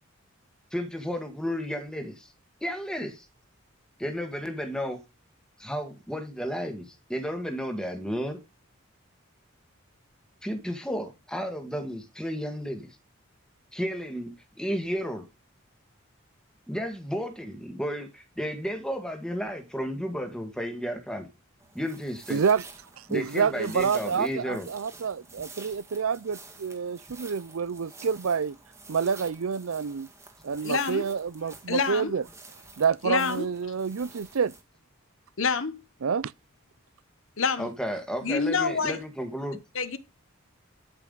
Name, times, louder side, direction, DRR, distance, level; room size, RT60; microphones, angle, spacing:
voice 1, 0.7-2.3 2.6-3.3 4.0-5.0 5.6-8.4 10.4-12.9 13.7-15.2 16.7-21.3 21.7-22.4 23.1-24.7 37.6-39.6, equal, 5° left, 1.8 m, -33 dB
sound 1, 21.6-34.6, right 3 dB, 15° right, 1.8 m, -49 dB
voice 2, 22.3-22.6 23.0-28.6 28.9-30.1 30.4-32.2 32.8-34.5 36.0-36.3, right 6 dB, 80° right, 0.5 m, -28 dB
voice 3, 30.6-31.1 31.7-32.1 33.0-33.5 35.4-35.8 37.4-37.7 38.2-39.0 39.7-40.0, left 5 dB, 70° left, 1.1 m, -27 dB
12.0 x 5.8 x 3.9 m
head